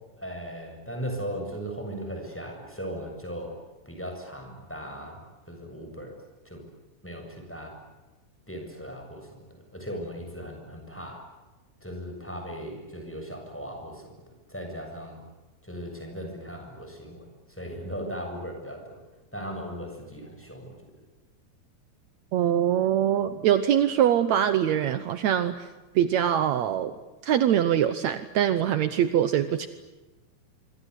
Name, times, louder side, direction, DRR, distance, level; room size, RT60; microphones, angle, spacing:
voice 1, 0.2-3.6 3.9-5.2 5.5-6.2 6.4-6.6 7.0-7.8 8.5-11.3 11.8-14.1 14.5-15.2 15.6-17.2 17.5-19.0 19.3-20.8, equal, 5° left, 2 dB, 7.2 m, -37 dB
voice 2, 22.3-25.7 25.9-26.9 27.2-29.7, right 10 dB, 75° right, 12 dB, 1.6 m, -23 dB
26.0 x 25.5 x 8.3 m, 1.2 s
omnidirectional pair, 4.5 m